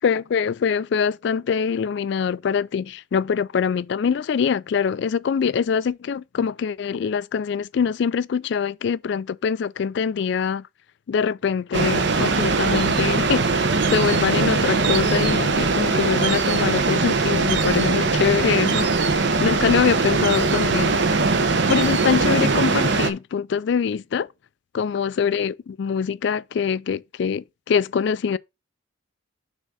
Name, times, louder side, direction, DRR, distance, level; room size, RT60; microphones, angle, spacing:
voice 1, 0.0-10.7 11.1-21.0 21.7-24.3 24.7-28.4, left 6 dB, 55° left, 0.3 m, -24 dB
sound 1, 11.7-23.1, right 4 dB, 55° right, 0.9 m, -21 dB
6.4 x 3.7 x 6.1 m
head